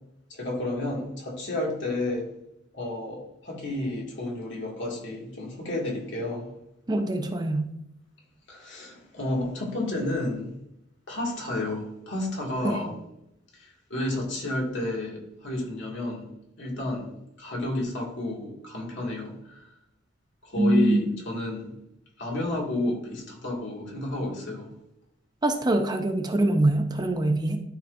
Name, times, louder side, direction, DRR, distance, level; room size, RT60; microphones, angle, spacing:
voice 1, 0.3-2.3 2.7-6.5 8.5-10.5 11.1-12.9 13.5-16.3 16.6-17.1 17.4-19.7 20.4-21.7 22.2-24.7, left 2 dB, 65° left, -2 dB, 2.3 m, -31 dB
voice 2, 6.9-7.7 12.6-12.9 20.6-21.0 25.4-27.6, right 1 dB, 20° right, 5 dB, 0.6 m, -24 dB
12.0 x 5.1 x 2.6 m, 0.81 s
head